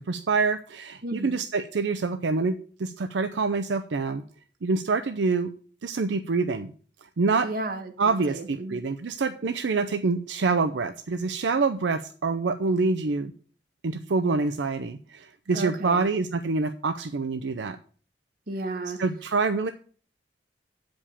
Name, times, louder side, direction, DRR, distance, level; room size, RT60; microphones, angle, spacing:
voice 1, 0.1-4.2 4.6-5.5 5.8-6.7 7.2-7.5 8.0-13.3 13.8-17.8 19.0-19.7, right 4 dB, 85° right, 8 dB, 0.5 m, -26 dB
voice 2, 1.0-1.4 7.4-8.8 15.5-16.1 18.5-19.0, right 2 dB, 55° right, 5 dB, 1.3 m, -33 dB
8.3 x 5.2 x 7.2 m, 0.43 s
head